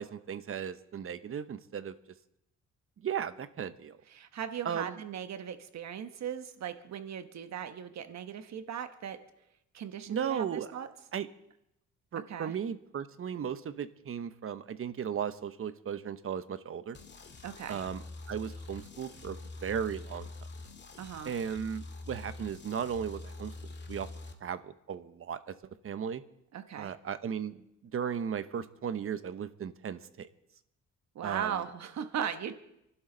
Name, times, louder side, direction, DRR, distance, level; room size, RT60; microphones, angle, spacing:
voice 1, 0.0-1.9 3.0-4.0 4.6-5.0 10.1-10.7 11.1-11.3 12.1-17.0 17.7-20.3 21.2-23.5 23.9-24.1 24.4-25.5 25.8-26.2 26.8-30.3 31.2-31.6, right 8 dB, 45° right, 13 dB, 1.0 m, -36 dB
voice 2, 4.1-9.2 9.7-10.9 12.3-12.5 17.4-17.8 21.0-21.3 26.5-26.9 31.1-32.5, right 8 dB, 60° right, 9 dB, 1.2 m, -38 dB
sound 1, 16.9-24.3, left 3 dB, 35° left, 2.0 m, -45 dB
28.0 x 12.0 x 4.0 m, 0.82 s
cardioid pair, 90°, 30 cm